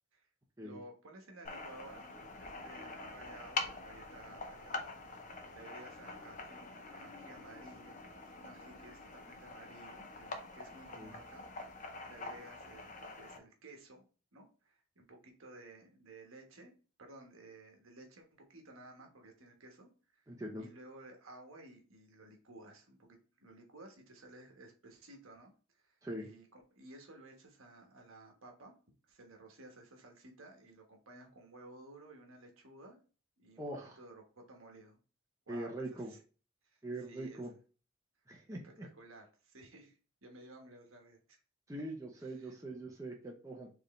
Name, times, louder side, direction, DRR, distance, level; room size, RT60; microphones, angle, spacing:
voice 1, 0.6-14.0 14.3-16.7 17.0-20.3 20.6-28.7 29.1-33.0 33.4-33.6 34.0-35.0 35.5-36.2 36.7-36.8 37.1-37.4 38.5-41.4 42.2-42.6, right 2 dB, 70° right, 2 dB, 1.2 m, -55 dB
sound 1, 1.5-13.4, left 3 dB, 35° left, 0.6 m, -45 dB
voice 2, 20.3-20.7 26.0-26.3 33.6-34.0 35.5-36.1 36.8-37.5 38.3-38.9 41.7-43.7, right 1 dB, 15° right, -1 dB, 0.6 m, -42 dB
4.6 x 3.3 x 3.1 m, 0.37 s
head